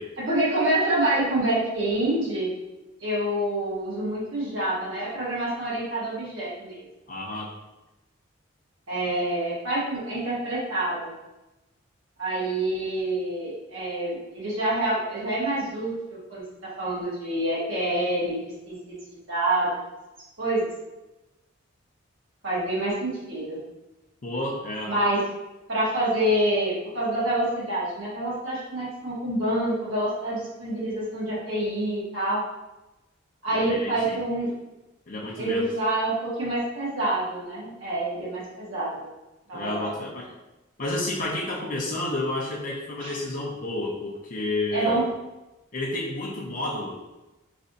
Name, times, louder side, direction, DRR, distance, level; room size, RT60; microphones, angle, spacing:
voice 1, 0.3-2.5 3.0-6.8 8.9-11.1 12.2-16.4 16.8-18.4 18.6-18.7 19.1-19.8 20.4-20.7 22.4-23.6 24.9-25.2 25.7-32.4 33.4-34.5 35.4-39.0 39.5-40.0 43.0-43.1 44.7-45.0, right 1 dB, 75° right, -7 dB, 1.4 m, -27 dB
voice 2, 7.1-7.5 24.2-24.9 33.5-34.2 35.1-35.7 39.5-40.3 40.8-45.0 45.7-46.9, left 2 dB, 40° left, -4 dB, 0.6 m, -30 dB
3.3 x 2.5 x 3.9 m, 1.0 s
head